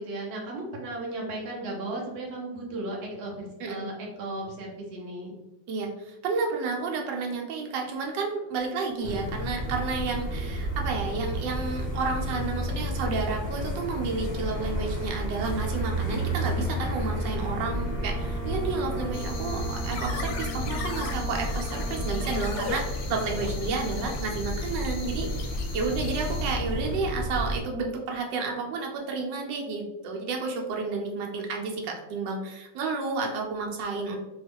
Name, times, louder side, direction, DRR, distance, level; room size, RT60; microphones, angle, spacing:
voice 1, 0.0-5.3, right 2 dB, 50° right, -2 dB, 0.7 m, -35 dB
voice 2, 5.7-25.5 25.7-34.2, right 4 dB, 80° right, 1 dB, 1.3 m, -31 dB
sound 1, 9.0-27.6, equal, 65° left, 0.6 m, -31 dB
Brass instrument, 17.0-22.8, left 2 dB, 20° right, 1.3 m, -41 dB
sound 2, 19.1-26.4, left 4 dB, 90° left, 1.3 m, -39 dB
3.0 x 2.3 x 3.4 m, 0.99 s
omnidirectional pair, 1.9 m